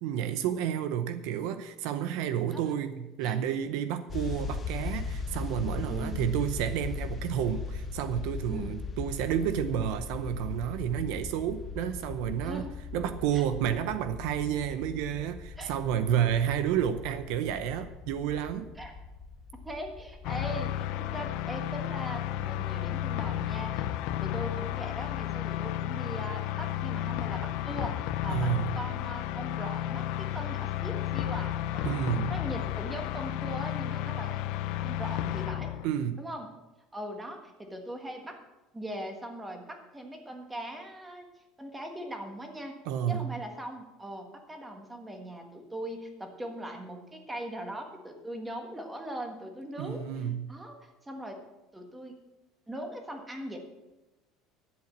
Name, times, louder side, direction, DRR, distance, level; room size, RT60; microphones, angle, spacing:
voice 1, 0.0-12.6 12.9-18.7 28.3-28.7 31.8-32.3 35.8-36.2 42.9-43.3 49.8-50.5, right 9 dB, 65° right, 11 dB, 0.7 m, -30 dB
sound 1, 4.1-23.3, left 4 dB, 20° left, 0.7 m, -39 dB
voice 2, 5.9-6.2 8.5-8.8 12.4-12.7 13.3-13.4 15.6-15.7 18.7-18.9 19.6-23.9 24.2-32.0 32.3-34.5 34.8-35.7 36.2-36.5 36.9-38.4 38.7-41.3 41.6-42.8 43.1-51.4 51.7-52.1 52.7-53.6, right 1 dB, 10° right, 4 dB, 1.5 m, -40 dB
sound 2, 20.2-35.9, left 12 dB, 60° left, 0.6 m, -32 dB
11.5 x 7.7 x 7.4 m, 1.0 s
cardioid pair, 175°, 0 cm